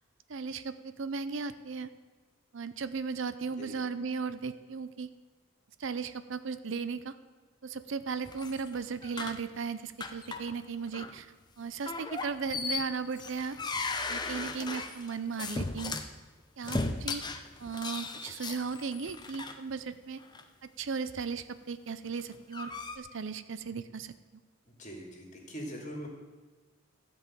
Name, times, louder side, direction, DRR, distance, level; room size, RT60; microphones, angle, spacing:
voice 1, 0.3-1.9 2.5-5.1 5.8-7.1 7.6-11.3 11.6-13.6 14.1-15.9 16.6-17.2 17.6-20.2 20.8-22.7 23.0-24.1, right 5 dB, 60° right, 13 dB, 0.5 m, -36 dB
sound 1, 8.2-9.5 10.0-10.6 10.9-11.1 11.9-16.1 16.6-19.5 20.2-20.4 22.1-23.0, left 3 dB, 20° left, 0.7 m, -37 dB
voice 2, 24.6-26.1, equal, 35° left, 1 dB, 2.7 m, -42 dB
14.0 x 5.3 x 8.8 m, 1.4 s
head